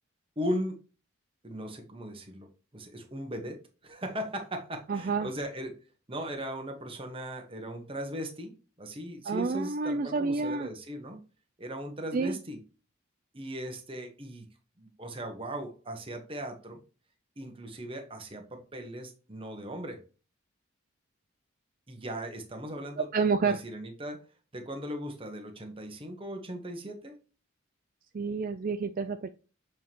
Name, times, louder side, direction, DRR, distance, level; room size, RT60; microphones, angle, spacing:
voice 1, 0.4-0.8 1.4-2.5 2.7-5.8 6.1-8.5 8.8-11.2 11.6-12.6 13.3-14.5 14.8-16.8 17.4-20.0 21.9-23.1 23.4-24.3 24.5-27.1, equal, 25° right, 4 dB, 1.2 m, -38 dB
voice 2, 4.9-5.3 9.3-10.7 12.1-12.4 23.1-23.6 28.1-29.3, right 4 dB, 45° right, 9 dB, 0.4 m, -29 dB
7.2 x 4.5 x 2.9 m, 0.34 s
head